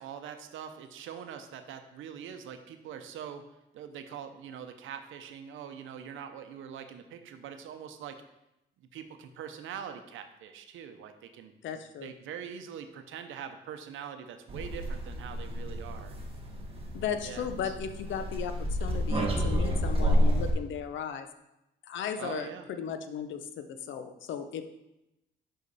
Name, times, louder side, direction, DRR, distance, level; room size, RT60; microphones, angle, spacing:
voice 1, 0.0-3.5 3.7-8.2 8.9-16.2 17.2-17.7 22.2-22.7, right 8 dB, 80° right, 8 dB, 0.7 m, -43 dB
voice 2, 11.6-12.1 16.9-21.3 21.9-24.6, left 7 dB, 70° left, 9 dB, 0.6 m, -36 dB
sound 1, 14.5-20.5, equal, 30° right, 1.3 m, -30 dB
5.8 x 5.1 x 4.1 m, 0.90 s
cardioid pair, 90°, 20 cm